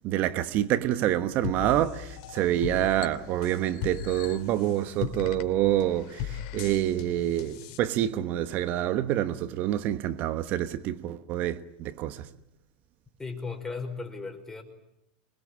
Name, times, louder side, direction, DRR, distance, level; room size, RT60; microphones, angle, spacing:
voice 1, 0.0-12.3, right 12 dB, 50° right, 1.2 m, -27 dB
sound 1, 1.4-7.8, left 9 dB, 60° left, 2.7 m, -38 dB
voice 2, 13.2-14.6, left 4 dB, 10° left, 5.3 m, -36 dB
25.5 x 21.0 x 10.0 m
hypercardioid pair, 105°, 4 cm